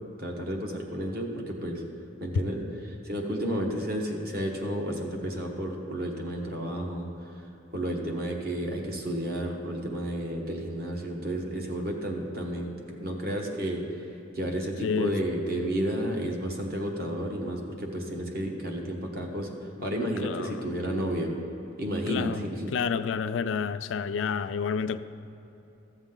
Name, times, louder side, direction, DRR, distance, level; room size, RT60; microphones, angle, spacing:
voice 1, 0.2-1.8 2.2-2.6 3.0-7.1 7.7-13.8 14.3-19.5 19.8-21.3 21.8-22.7, right 1 dB, 55° right, 1.1 m, -31 dB
voice 2, 14.8-15.1 19.8-19.9 20.2-20.7 22.1-22.4 22.7-25.0, left 6 dB, 90° left, 0.4 m, -29 dB
13.5 x 7.2 x 3.8 m
head